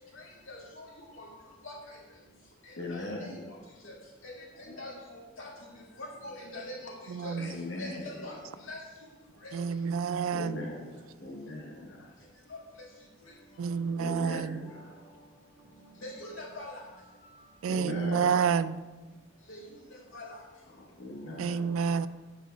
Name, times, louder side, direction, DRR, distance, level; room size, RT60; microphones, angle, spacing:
voice 1, 0.5-0.8 1.2-1.3 1.6-1.7 2.9-3.0 4.8-4.9 5.4-5.5 6.0-6.9 7.2-7.3 7.8-8.3 8.7-8.8 9.4-9.5 16.0-16.7 19.5-19.6 20.1-20.3, left 2 dB, 75° left, -3 dB, 2.2 m, -41 dB
voice 2, 2.7-3.5 4.5-5.2 7.4-8.7 9.3-9.4 9.9-12.2 14.0-15.2 16.3-16.4 17.6-18.6 20.1-20.2 20.6-22.1, left 2 dB, 60° left, 0 dB, 1.3 m, -41 dB
voice 3, 7.1-7.5 9.5-10.6 13.6-14.5 17.6-18.8 21.4-22.1, right 6 dB, 80° right, 15 dB, 0.3 m, -29 dB
8.9 x 5.0 x 5.0 m, 1.2 s
head